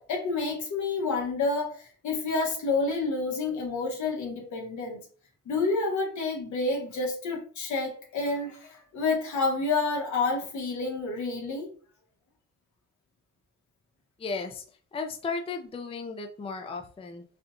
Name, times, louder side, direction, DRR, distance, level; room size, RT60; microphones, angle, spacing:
voice 1, 0.0-5.0 5.5-11.7, left 3 dB, 75° left, 1.3 m, -29 dB
voice 2, 14.2-17.2, left 4 dB, 20° left, 0.5 m, -35 dB
4.2 x 2.3 x 2.6 m
cardioid pair, 90°, 30 cm